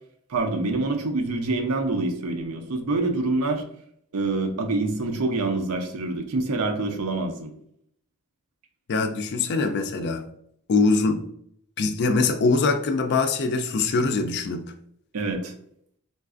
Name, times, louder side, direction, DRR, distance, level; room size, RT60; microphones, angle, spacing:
voice 1, 0.3-3.6 4.1-7.5 15.1-15.5, right 2 dB, 70° right, 5 dB, 0.5 m, -26 dB
voice 2, 8.9-10.2 10.7-11.2 11.8-14.7, left 3 dB, 50° left, 7 dB, 0.4 m, -23 dB
3.8 x 2.4 x 2.4 m, 0.68 s
head